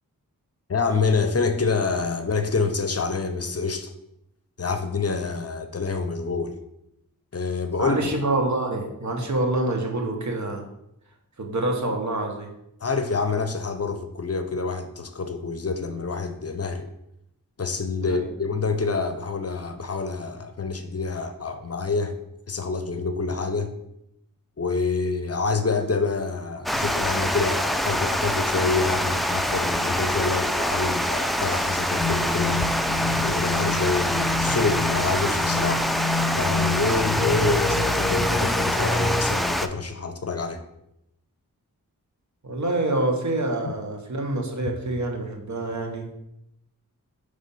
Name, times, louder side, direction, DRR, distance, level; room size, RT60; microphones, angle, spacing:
voice 1, 0.7-3.9 4.6-6.5 7.3-8.1 12.8-16.9 17.6-22.1 22.5-23.7 24.6-32.6 33.2-35.9 36.4-40.6, left 4 dB, 45° left, 8 dB, 0.7 m, -27 dB
voice 2, 7.8-10.6 11.4-12.5 18.0-18.2 42.4-46.1, right 2 dB, 55° right, 2 dB, 1.2 m, -26 dB
Water, 26.7-39.7, equal, ahead, 0.4 m, -25 dB
sound 1, 32.0-39.3, left 3 dB, 25° left, 1.0 m, -28 dB
5.3 x 3.4 x 5.3 m, 0.82 s
cardioid pair, 55°, 34 cm